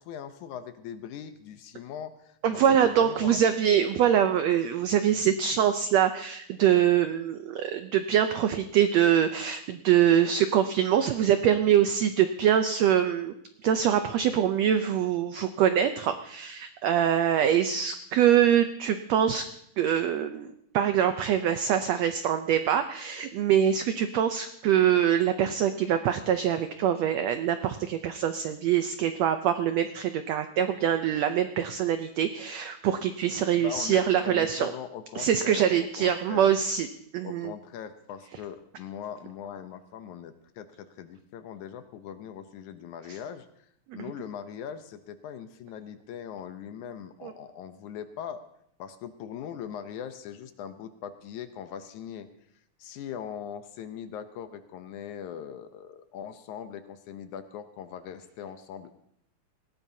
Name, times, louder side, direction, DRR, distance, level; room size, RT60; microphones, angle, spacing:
voice 1, 0.0-3.4 33.6-36.5 37.2-43.5 43.9-48.4 48.8-52.3 52.8-58.9, left 8 dB, 75° left, 9 dB, 2.1 m, -40 dB
voice 2, 2.4-13.3 13.6-19.4 19.8-34.7 35.1-36.9 37.1-37.5 43.1-43.2 43.9-44.0 47.2-47.3, right 9 dB, 85° right, 8 dB, 1.5 m, -24 dB
19.0 x 17.0 x 2.7 m, 0.73 s
omnidirectional pair, 3.8 m